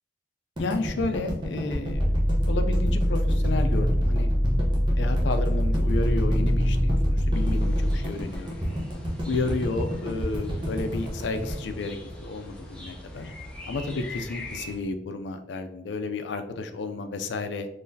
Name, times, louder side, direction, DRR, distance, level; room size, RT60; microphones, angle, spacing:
voice 1, 0.6-2.1 2.4-4.3 5.0-8.6 9.2-13.3 13.7-17.7, left 3 dB, 80° left, 7 dB, 0.4 m, -32 dB
sound 1, 0.6-12.7, equal, 25° right, 0.8 m, -31 dB
sound 2, 1.9-7.9, equal, 65° right, 1.3 m, -23 dB
sound 3, 7.3-14.8, left 1 dB, 5° left, 0.6 m, -41 dB
3.9 x 3.0 x 2.7 m, 0.81 s
head